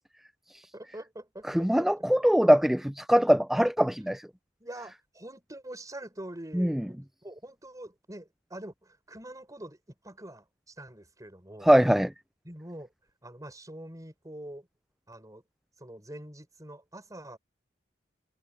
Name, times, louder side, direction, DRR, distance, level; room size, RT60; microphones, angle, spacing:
voice 1, 0.7-2.1 4.6-9.8 10.0-11.7 12.4-12.9 13.2-14.7 15.1-15.4 15.8-17.4, right 1 dB, 20° right, 5.8 m, -45 dB
voice 2, 1.5-4.2 6.6-6.7 11.7-12.1, equal, ahead, 0.3 m, -22 dB
head